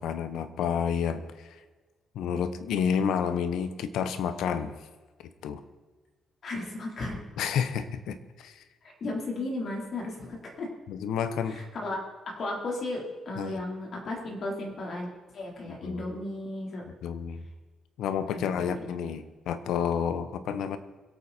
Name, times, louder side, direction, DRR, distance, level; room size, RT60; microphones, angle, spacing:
voice 1, 0.0-1.5 2.1-4.8 5.4-5.6 7.4-8.6 10.9-11.6 13.4-13.6 15.6-16.0 16.8-17.4 18.0-20.8, left 7 dB, 80° left, 12 dB, 1.1 m, -30 dB
voice 2, 6.4-7.2 8.8-10.7 11.4-15.1 15.3-16.8 18.3-18.8, left 2 dB, 55° left, -1 dB, 4.4 m, -35 dB
23.5 x 8.8 x 4.5 m, 1.3 s
cardioid pair, 90°, 0 cm